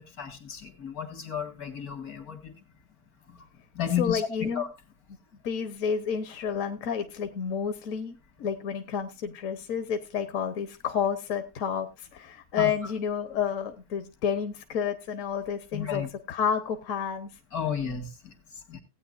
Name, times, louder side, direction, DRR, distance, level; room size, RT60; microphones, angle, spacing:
voice 1, 0.0-2.5 3.3-3.5 3.7-4.7 12.6-12.7 15.7-16.1 17.5-18.8, left 8 dB, 85° left, 5 dB, 2.4 m, -33 dB
voice 2, 4.0-4.6 5.4-17.4, left 7 dB, 65° left, 7 dB, 1.3 m, -30 dB
16.5 x 9.0 x 2.5 m, 0.24 s
omnidirectional pair, 1.5 m